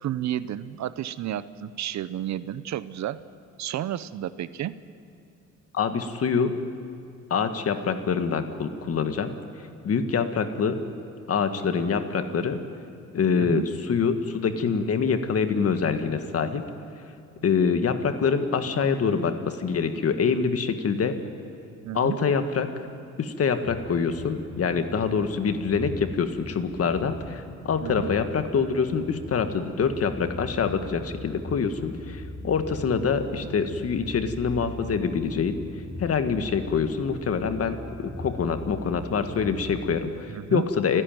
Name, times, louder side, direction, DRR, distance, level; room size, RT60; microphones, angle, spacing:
voice 1, 0.0-3.2 3.6-4.8 13.3-13.7 21.8-22.2 27.8-28.1 40.3-40.7, right 11 dB, 65° right, 16 dB, 0.8 m, -31 dB
voice 2, 5.7-6.5 7.3-9.3 9.8-10.8 11.3-12.6 13.1-13.6 13.9-16.6 17.4-21.2 21.9-22.7 23.2-35.6 36.0-37.8 38.2-41.0, left 6 dB, 50° left, 8 dB, 1.7 m, -25 dB
sound 1, 23.6-39.9, left 1 dB, 30° left, 7.8 m, -40 dB
29.5 x 11.0 x 9.2 m, 2.6 s
cardioid pair, 90°, 30 cm